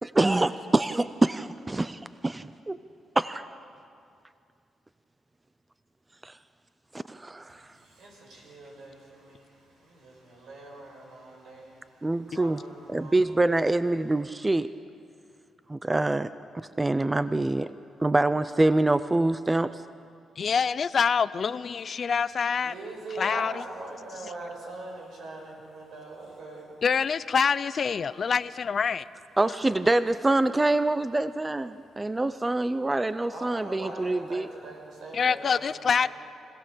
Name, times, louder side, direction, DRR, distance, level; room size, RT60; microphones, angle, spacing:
voice 1, 0.0-2.8 3.2-3.5 6.2-6.3 7.1-7.6 12.0-12.6 12.9-14.7 15.7-17.7 18.0-19.8 29.4-34.5, right 2 dB, 15° right, 14 dB, 0.5 m, -25 dB
voice 2, 7.5-11.7 12.1-13.3 22.6-26.8 33.3-36.1, right 2 dB, 80° right, -1 dB, 6.0 m, -42 dB
voice 3, 20.4-22.7 23.1-23.6 24.2-24.3 26.8-29.0 35.1-36.1, left 6 dB, 50° left, 17 dB, 0.5 m, -26 dB
25.5 x 16.5 x 6.9 m, 2.4 s
cardioid pair, 90°, 0 cm